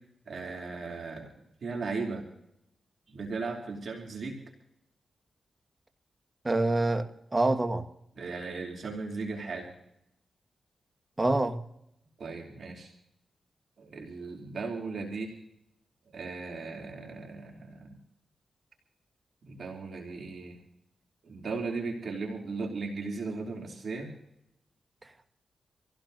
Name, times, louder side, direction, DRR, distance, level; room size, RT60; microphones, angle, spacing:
voice 1, 0.3-1.3 1.6-2.3 3.1-4.4 8.1-9.7 12.2-12.9 13.8-15.3 16.1-18.0 19.5-20.6 21.2-24.1, right 4 dB, 70° right, 0 dB, 3.0 m, -37 dB
voice 2, 6.4-7.9 11.2-11.6, right 2 dB, 25° right, 7 dB, 1.7 m, -26 dB
27.0 x 16.5 x 2.7 m, 0.80 s
cardioid pair, 70°, 0 cm